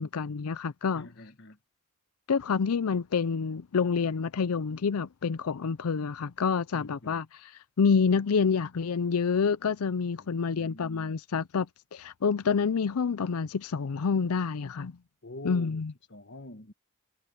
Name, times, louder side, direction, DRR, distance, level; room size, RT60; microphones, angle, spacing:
voice 1, 0.0-1.1 2.3-7.5 7.8-11.7 11.9-14.9 15.4-15.9, left 5 dB, 90° left, 0.5 m, -28 dB
voice 2, 0.9-1.6 6.7-7.2 10.2-11.1 15.2-15.8 16.1-16.7, left 1 dB, 55° left, 1.5 m, -46 dB
head